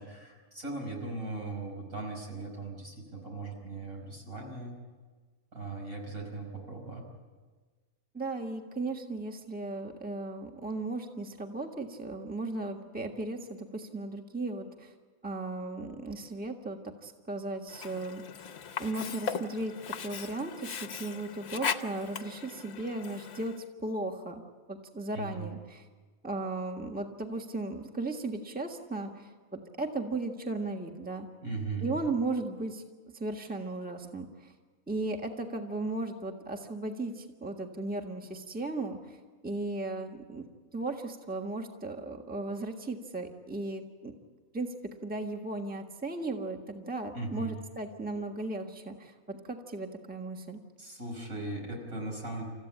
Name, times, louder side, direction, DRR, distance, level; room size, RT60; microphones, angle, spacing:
voice 1, 0.0-4.7 5.5-7.0 25.1-25.5 31.4-32.0 47.1-47.6 50.8-52.5, right 3 dB, 75° right, 1 dB, 5.7 m, -38 dB
voice 2, 8.1-14.9 15.2-18.5 18.8-24.4 24.7-25.8 26.2-31.3 31.8-32.8 33.1-34.5 34.9-39.2 39.4-40.4 40.7-44.1 44.5-44.7 45.0-50.6, right 2 dB, 5° right, 3 dB, 1.5 m, -36 dB
Sink (filling or washing), 17.7-23.7, left 6 dB, 55° left, 1.0 m, -38 dB
29.5 x 15.0 x 8.7 m, 1.4 s
omnidirectional pair, 1.5 m